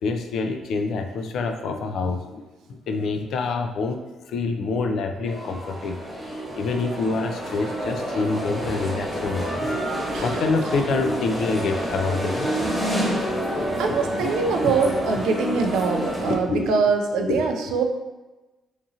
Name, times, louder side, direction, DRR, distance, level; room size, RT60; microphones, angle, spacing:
voice 1, 0.0-2.4 2.7-4.0 4.3-6.2 6.6-9.6 10.2-12.5 13.4-13.6 13.9-15.2 15.6-17.8, left 3 dB, 75° left, 5 dB, 0.3 m, -27 dB
sound 1, 5.3-16.4, equal, 5° right, 1.0 m, -28 dB
voice 2, 10.1-10.7 13.8-17.8, right 5 dB, 85° right, 4 dB, 0.3 m, -24 dB
2.8 x 2.4 x 2.7 m, 1.1 s
cardioid pair, 90°, 0 cm